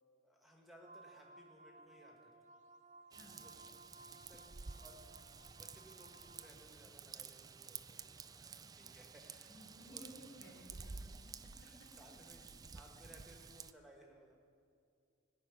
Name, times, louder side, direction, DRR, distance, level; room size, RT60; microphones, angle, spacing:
voice 1, 0.2-2.6 3.4-3.6 4.1-10.0 10.4-10.5 10.8-11.1 11.6-12.4 12.7-14.4, equal, ahead, 0 dB, 1.5 m, -62 dB
sound 1, 0.8-6.5, right 2 dB, 35° right, 0.8 m, -60 dB
Raindrop / Vehicle horn car horn honking / Trickle dribble, 3.1-13.7, right 5 dB, 20° right, 0.3 m, -52 dB
voice 2, 9.5-11.9, equal, 75° left, -1 dB, 4.0 m, -58 dB
18.5 x 6.4 x 9.7 m, 2.4 s
head